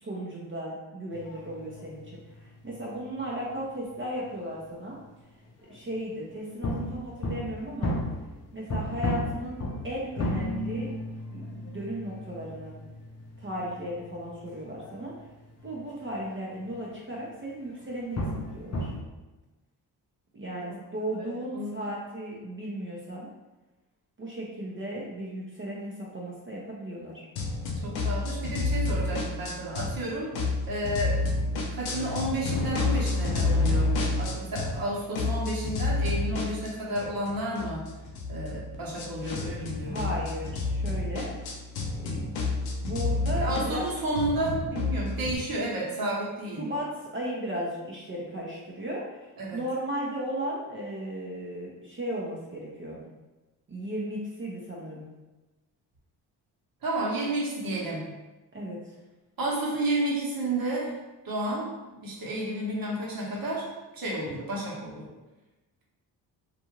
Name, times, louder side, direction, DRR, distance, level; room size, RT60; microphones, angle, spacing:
voice 1, 0.0-2.2 2.6-5.0 5.7-8.0 8.5-10.9 11.3-12.8 13.4-15.1 15.6-18.9 20.3-23.3 24.2-27.2 39.9-41.3 42.0-42.4 42.8-43.8 46.6-53.1 53.7-55.0 58.5-58.8, equal, 25° right, -4 dB, 0.7 m, -35 dB
sound 1, 1.1-4.3 4.6-5.1 5.5-6.0 6.6-16.3 16.6-16.8 17.3-17.4 17.8-19.0, left 1 dB, 35° left, 0.6 m, -35 dB
voice 2, 21.2-22.0 27.8-31.2 31.7-37.8 38.3-40.2 43.4-46.6 49.4-49.6 56.8-58.1 59.4-60.9 61.2-61.7 62.0-63.6 63.9-65.1, right 1 dB, 50° right, -3 dB, 1.1 m, -31 dB
sound 2, 27.4-30.0 30.3-34.9 35.1-45.4, left 3 dB, 85° left, 0.6 m, -29 dB
2.6 x 2.4 x 2.9 m, 1.1 s
supercardioid pair, 55°, 45 cm